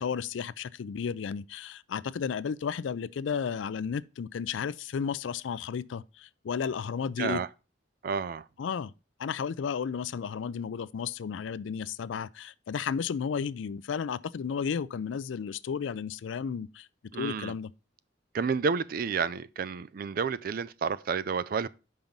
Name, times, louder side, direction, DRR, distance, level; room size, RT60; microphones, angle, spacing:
voice 1, 0.0-7.4 8.6-8.9 9.2-16.9 17.1-17.7, left 6 dB, 80° left, 0.4 m, -33 dB
voice 2, 8.0-8.5 17.1-17.5 18.3-21.7, right 5 dB, 50° right, 0.4 m, -30 dB
5.5 x 5.1 x 5.9 m
head